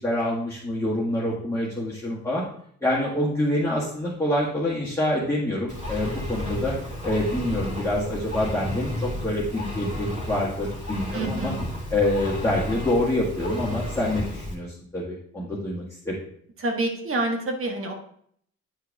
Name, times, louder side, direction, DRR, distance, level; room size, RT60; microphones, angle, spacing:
voice 1, 0.0-2.4 2.8-6.7 7.0-11.5 11.9-16.2, left 1 dB, 10° left, -7 dB, 1.9 m, -26 dB
Engine, 5.7-14.5, equal, 25° right, 3.2 m, -32 dB
voice 2, 11.1-11.7 16.6-17.9, right 2 dB, 45° right, 3 dB, 1.6 m, -27 dB
8.9 x 4.7 x 3.5 m, 0.64 s
cardioid pair, 90°, 30 cm